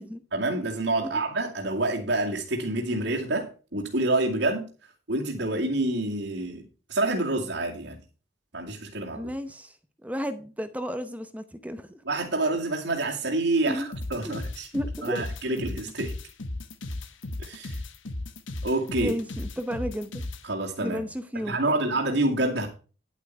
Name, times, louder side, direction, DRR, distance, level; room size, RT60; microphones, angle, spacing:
voice 1, 0.3-4.7 5.1-6.6 6.9-8.0 8.5-9.3 12.0-14.7 15.0-16.1 17.4-17.8 18.6-19.1 20.4-21.0 21.3-22.7, right 2 dB, 70° right, -4 dB, 2.4 m, -27 dB
voice 2, 9.1-9.8 10.0-12.0 13.7-13.9 14.2-14.4 14.7-15.2 19.0-20.3 20.8-21.6, equal, 10° right, 10 dB, 0.8 m, -33 dB
sound 1, 13.9-20.4, left 2 dB, 85° left, 1.3 m, -35 dB
11.0 x 8.4 x 4.6 m, 0.35 s
head